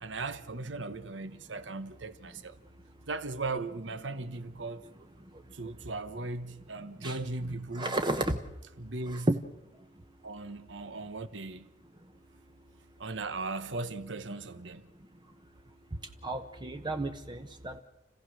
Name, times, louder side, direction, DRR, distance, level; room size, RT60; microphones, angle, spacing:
voice 1, 0.0-2.6 3.1-4.9 5.5-7.9 8.8-9.3 10.2-11.7 13.0-14.9, right 3 dB, 80° right, 1.2 m, -38 dB
voice 2, 7.7-8.4 9.3-9.4 16.2-17.8, right 1 dB, 25° right, 0.9 m, -31 dB
29.5 x 16.0 x 6.4 m
head